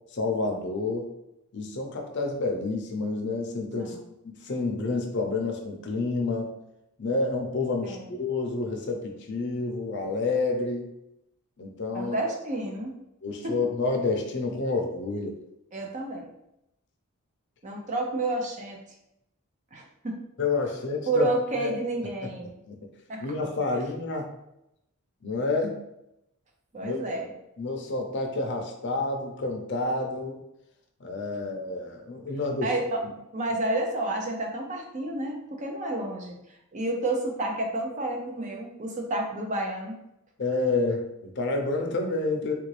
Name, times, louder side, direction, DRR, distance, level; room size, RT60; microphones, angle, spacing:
voice 1, 0.1-1.1 1.5-4.0 4.4-6.5 7.0-10.9 11.6-12.2 13.2-15.3 20.4-21.3 21.6-21.7 22.7-22.8 23.2-24.3 25.2-25.8 26.8-27.0 27.6-30.4 31.0-32.7 40.4-42.5, left 3 dB, 50° left, 2 dB, 0.6 m, -29 dB
voice 2, 11.9-12.9 13.4-13.6 15.7-16.3 17.6-18.8 19.7-20.2 21.1-22.5 23.1-23.3 26.7-27.3 32.6-33.0 33.3-36.4 36.7-40.0, right 2 dB, 35° right, 2 dB, 0.5 m, -30 dB
3.5 x 2.5 x 3.2 m, 0.83 s
head